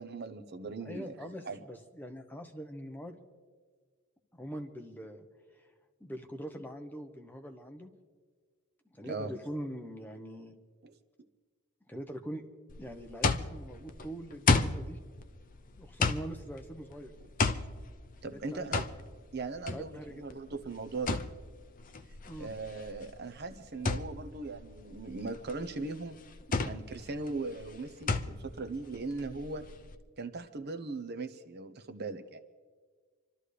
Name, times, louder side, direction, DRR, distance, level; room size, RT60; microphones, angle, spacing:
voice 1, 0.0-1.6 9.1-9.3 10.8-10.9 18.2-18.8 19.3-21.2 22.4-26.2 26.6-29.6 30.2-32.4, right 3 dB, 50° right, 10 dB, 0.8 m, -39 dB
voice 2, 0.8-3.2 4.3-5.3 5.5-5.7 6.0-7.9 8.9-10.5 11.9-12.4 12.8-15.0 15.8-17.1 18.2-18.8 19.7-20.3 22.3-22.5, equal, 10° left, 4 dB, 1.0 m, -43 dB
sound 1, 12.7-30.0, left 3 dB, 40° left, 0.6 m, -34 dB
28.0 x 13.0 x 3.3 m, 1.5 s
head